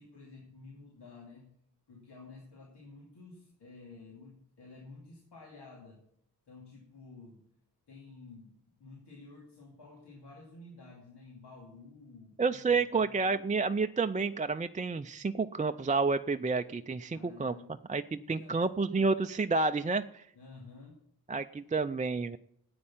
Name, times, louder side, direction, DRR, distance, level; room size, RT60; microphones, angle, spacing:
voice 1, 0.0-1.5 1.9-6.0 6.5-7.4 7.9-13.3 17.1-17.7 18.2-18.7 20.3-21.0 21.6-21.7, left 3 dB, 90° left, -2 dB, 2.7 m, -52 dB
voice 2, 12.4-17.5 17.9-20.2 21.3-22.4, right 4 dB, 20° right, 8 dB, 0.4 m, -30 dB
9.7 x 8.7 x 7.3 m, 0.70 s
wide cardioid pair, 105°, 39 cm